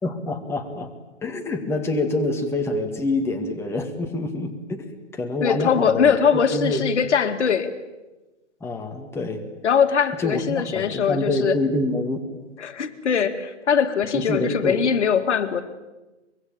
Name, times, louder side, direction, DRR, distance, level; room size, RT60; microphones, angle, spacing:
voice 1, 0.0-0.9 1.2-6.8 8.6-9.4 10.2-12.2 14.1-14.8, left 2 dB, 5° left, 3 dB, 1.9 m, -26 dB
voice 2, 5.4-7.7 9.6-11.6 12.6-15.6, left 7 dB, 70° left, 8 dB, 2.3 m, -21 dB
24.5 x 22.5 x 8.9 m, 1.1 s
hypercardioid pair, 145°, 36 cm